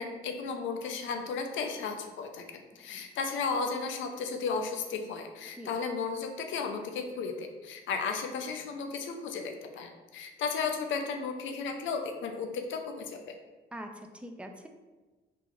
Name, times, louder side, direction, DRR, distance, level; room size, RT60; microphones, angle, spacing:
voice 1, 0.0-2.4 2.8-13.2, left 5 dB, 75° left, 4 dB, 0.5 m, -34 dB
voice 2, 13.7-14.7, equal, 5° right, 5 dB, 0.4 m, -43 dB
3.8 x 2.4 x 3.0 m, 1.2 s
cardioid pair, 90°, 20 cm